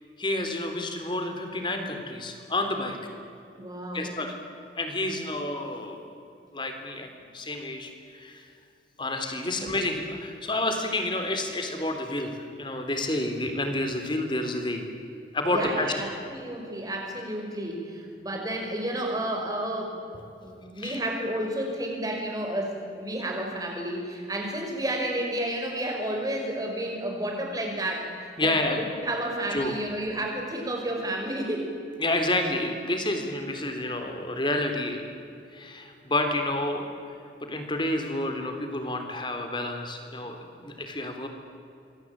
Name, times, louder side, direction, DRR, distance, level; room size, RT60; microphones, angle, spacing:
voice 1, 0.2-3.0 3.9-4.4 4.8-6.0 6.5-8.5 9.0-14.9 15.3-15.9 20.8-21.0 28.4-28.8 29.5-29.7 32.0-35.0 35.5-37.1 37.4-41.3, left 2 dB, 25° left, 5 dB, 3.6 m, -29 dB
voice 2, 3.6-4.1 9.5-9.7 15.5-20.0 20.4-28.6 29.0-31.7, right 1 dB, 20° right, 1 dB, 5.8 m, -31 dB
27.5 x 22.5 x 8.9 m, 2.5 s
head